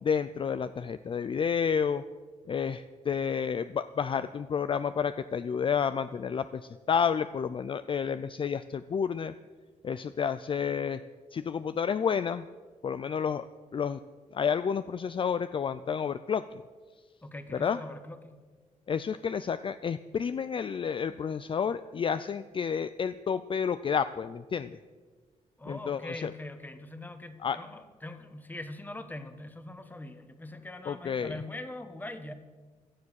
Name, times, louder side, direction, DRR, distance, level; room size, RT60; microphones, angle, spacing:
voice 1, 0.0-2.0 2.5-9.3 9.8-11.0 11.3-12.4 12.8-13.5 13.7-14.0 14.3-16.6 17.5-17.8 18.9-24.8 25.7-26.3 27.4-27.6 30.9-31.4, left 7 dB, 40° left, 13 dB, 0.4 m, -30 dB
voice 2, 17.2-18.4 25.6-32.3, left 1 dB, 15° left, 9 dB, 1.3 m, -42 dB
17.0 x 12.0 x 6.4 m, 1.4 s
cardioid pair, 115°, 13 cm